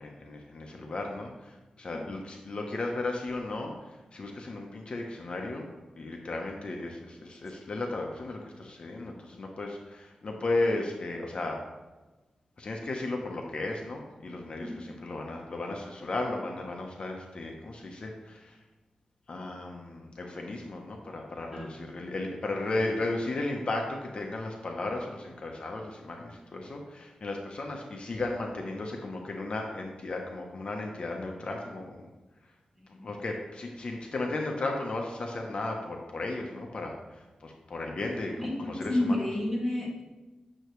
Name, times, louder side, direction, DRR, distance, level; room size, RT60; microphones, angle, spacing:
voice 1, 0.0-5.7 6.0-11.6 12.6-18.6 19.3-32.1 32.4-32.5 32.9-39.3, left 2 dB, 50° left, 1 dB, 0.9 m, -35 dB
voice 2, 38.4-40.0, left 1 dB, 5° right, -5 dB, 2.2 m, -30 dB
8.7 x 6.8 x 3.2 m, 1.1 s
wide cardioid pair, 110°, 2 cm